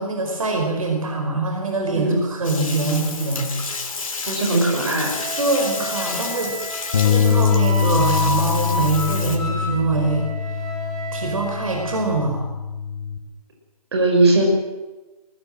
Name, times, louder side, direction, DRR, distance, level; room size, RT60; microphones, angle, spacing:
voice 1, 0.0-3.5 4.8-5.0 5.4-6.6 7.0-10.3 11.1-12.5, right 3 dB, 60° right, 2 dB, 4.9 m, -24 dB
Bathtub (filling or washing), 2.4-9.4, left 4 dB, 55° left, 3.4 m, -31 dB
voice 2, 4.3-5.1 13.9-14.4, right 2 dB, 40° right, 1 dB, 5.6 m, -18 dB
Wind instrument woodwind instrument, 5.0-12.1, equal, 5° left, 1.8 m, -30 dB
Bass guitar, 6.9-13.2, left 7 dB, 30° left, 1.7 m, -23 dB
21.0 x 19.0 x 7.6 m, 1.2 s
hypercardioid pair, 170°, 20 cm